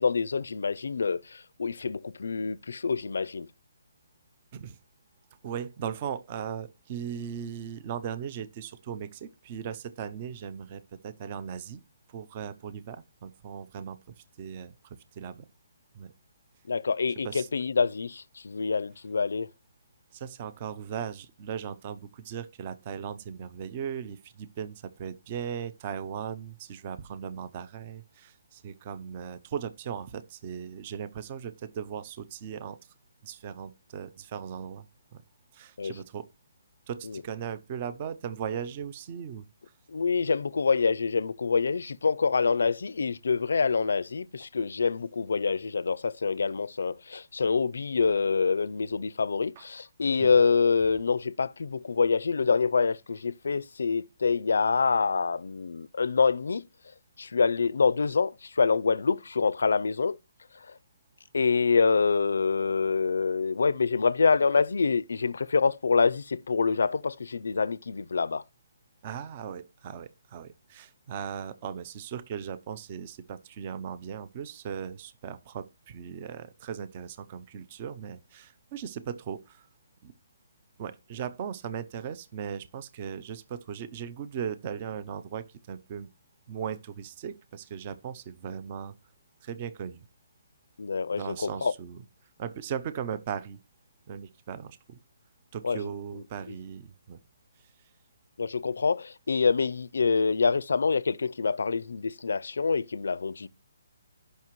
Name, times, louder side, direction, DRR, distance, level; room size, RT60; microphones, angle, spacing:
voice 1, 0.0-3.5 16.7-19.5 35.8-35.9 37.0-37.2 39.9-56.6 57.2-60.2 60.7-60.8 61.3-68.4 90.8-91.7 95.6-95.8 96.1-96.5 98.4-103.5, left 5 dB, 75° left, 0.5 m, -26 dB
voice 2, 5.4-11.8 12.1-14.0 14.4-15.4 15.9-16.1 17.2-17.5 20.1-32.8 33.2-34.8 35.1-35.2 35.5-36.3 36.9-39.5 49.6-49.7 50.2-50.3 69.0-79.7 80.0-80.1 80.8-86.1 86.5-88.9 89.4-90.1 91.1-92.0 92.4-93.6 94.1-95.0 95.5-97.2, right 8 dB, 25° right, 0.6 m, -38 dB
16.5 x 5.7 x 3.1 m
hypercardioid pair, 175°, 0 cm